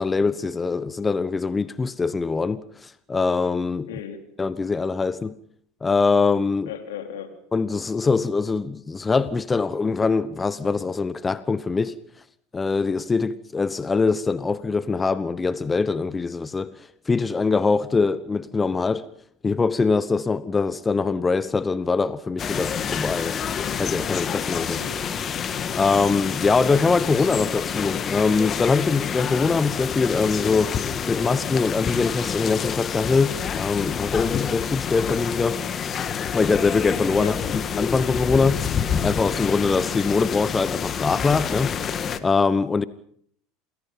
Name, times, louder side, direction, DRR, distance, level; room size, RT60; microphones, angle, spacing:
voice 1, 0.0-4.0 4.4-5.3 5.8-6.7 7.5-11.9 12.5-19.1 19.4-23.4 23.8-24.8 25.7-35.6 36.3-37.4 37.8-38.7 39.0-42.8, left 4 dB, 20° left, 1.0 m, -23 dB
voice 2, 3.8-4.2 6.7-7.3 24.7-25.0 37.2-37.4, left 9 dB, 80° left, 3.9 m, -35 dB
sound 1, 22.4-42.2, left 7 dB, 35° left, 1.9 m, -28 dB
28.0 x 20.5 x 5.6 m
hypercardioid pair, 85°, 0 cm